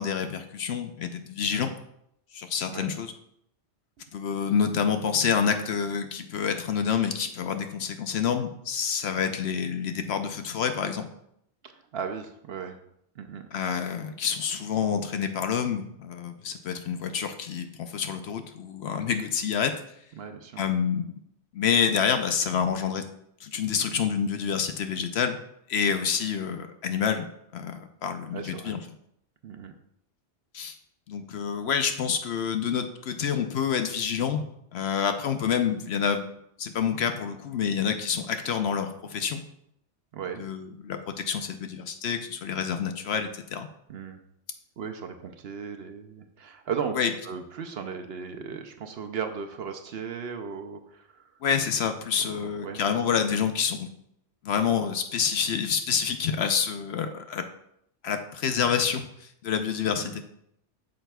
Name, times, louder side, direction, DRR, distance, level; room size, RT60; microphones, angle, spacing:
voice 1, 0.0-1.7 2.3-3.1 4.1-11.1 13.5-19.8 20.6-21.1 21.5-23.1 23.4-25.4 25.7-28.8 30.5-30.7 31.1-34.5 34.7-36.3 36.6-39.4 40.4-43.7 47.0-47.1 51.4-53.9 54.4-57.5 58.0-60.2, left 7 dB, 65° left, 8 dB, 0.8 m, -28 dB
voice 2, 11.6-12.8 13.1-13.5 20.2-20.6 28.3-28.8 29.4-29.7 40.1-40.4 43.9-44.2 44.8-46.9 47.2-51.3 52.2-52.8 60.0-60.2, right 6 dB, 65° right, 6 dB, 0.8 m, -36 dB
8.8 x 6.4 x 2.3 m, 0.75 s
omnidirectional pair, 1.2 m